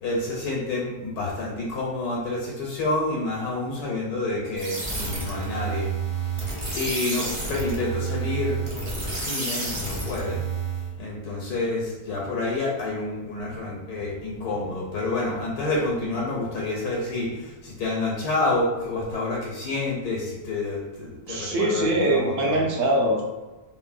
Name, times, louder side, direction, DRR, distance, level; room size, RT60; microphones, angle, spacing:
voice 1, 0.0-5.9 6.7-8.6 8.8-10.4 11.0-22.6, left 2 dB, 85° left, -3 dB, 1.2 m, -28 dB
sound 1, 4.6-10.9, right 4 dB, 45° right, 0.4 m, -30 dB
voice 2, 21.3-23.2, right 1 dB, 65° right, -1 dB, 0.9 m, -22 dB
3.6 x 2.0 x 2.4 m, 1.1 s
omnidirectional pair, 1.6 m